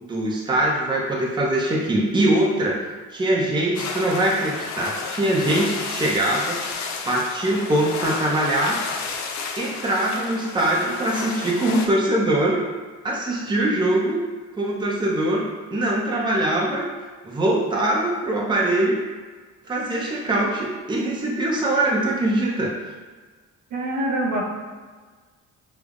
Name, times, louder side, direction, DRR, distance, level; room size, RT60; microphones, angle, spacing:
voice 1, 0.0-2.8 3.1-6.6 7.0-8.8 9.6-12.6 13.0-14.2 14.5-16.8 17.2-19.0 19.7-22.7, right 1 dB, 15° right, -3 dB, 0.6 m, -22 dB
sound 1, 3.7-11.9, left 5 dB, 65° left, 0.5 m, -32 dB
voice 2, 23.7-24.4, right 1 dB, 70° right, -2 dB, 0.9 m, -24 dB
5.0 x 2.0 x 2.4 m, 1.4 s
cardioid pair, 90°, 30 cm